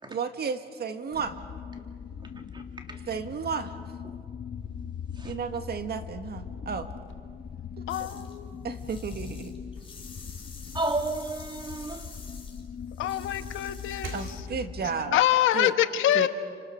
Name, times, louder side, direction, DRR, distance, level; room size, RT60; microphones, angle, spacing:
voice 1, 0.1-1.4 3.1-3.8 5.2-6.9 8.6-9.5 14.1-15.2 15.5-15.7 16.1-16.3, right 6 dB, 55° right, 8 dB, 1.8 m, -33 dB
sound 1, 1.1-15.2, left 7 dB, 50° left, 1.4 m, -41 dB
voice 2, 7.9-8.5 13.0-14.2 15.1-16.3, left 13 dB, 85° left, 9 dB, 1.3 m, -25 dB
sound 2, 7.9-8.4 8.7-14.5, left 4 dB, 25° left, 4.9 m, -49 dB
sound 3, 9.5-12.7 13.1-14.9, right 5 dB, 85° right, 2.6 m, -48 dB
voice 3, 10.7-12.1, right 2 dB, 25° right, 4 dB, 3.1 m, -32 dB
29.5 x 26.5 x 6.7 m, 2.1 s
cardioid pair, 90°, 20 cm